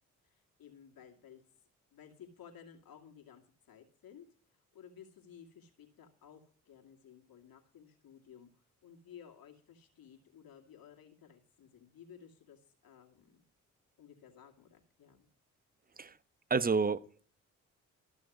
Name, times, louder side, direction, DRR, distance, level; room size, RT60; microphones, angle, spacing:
voice 1, 0.2-1.4 1.9-4.3 4.7-8.5 8.8-13.4 14.0-15.3, left 8 dB, 60° left, 2.4 m, -56 dB
voice 2, 16.5-17.2, right 5 dB, 20° right, 0.9 m, -30 dB
13.5 x 6.3 x 8.3 m
hypercardioid pair, 45°, 39 cm